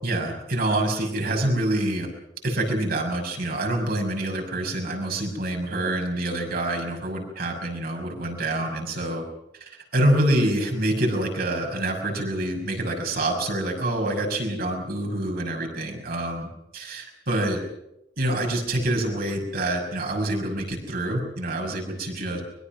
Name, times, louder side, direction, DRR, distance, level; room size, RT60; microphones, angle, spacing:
voice 1, 0.0-2.1 2.4-9.2 9.5-16.5 16.7-17.6 18.2-22.4, right 1 dB, 55° right, 2 dB, 6.2 m, -26 dB
23.5 x 22.5 x 6.1 m, 0.86 s
head